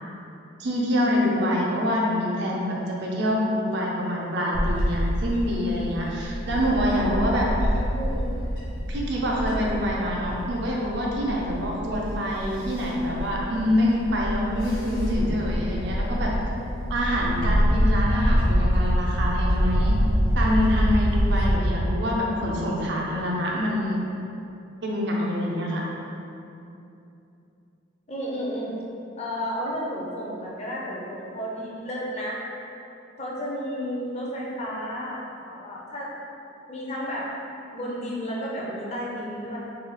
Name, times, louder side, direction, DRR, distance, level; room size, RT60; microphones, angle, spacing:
voice 1, 0.6-7.5 8.8-16.3 16.9-20.0 20.3-24.0 24.8-25.8, equal, 60° right, -3 dB, 0.5 m, -26 dB
Bird / Wind, 4.5-21.5, equal, 65° left, 1.2 m, -26 dB
voice 2, 8.0-8.3 28.1-28.8 29.2-32.4 33.2-36.1 36.7-37.3 37.7-39.6, equal, 35° left, -4 dB, 0.5 m, -32 dB
3.2 x 2.2 x 3.7 m, 2.7 s
head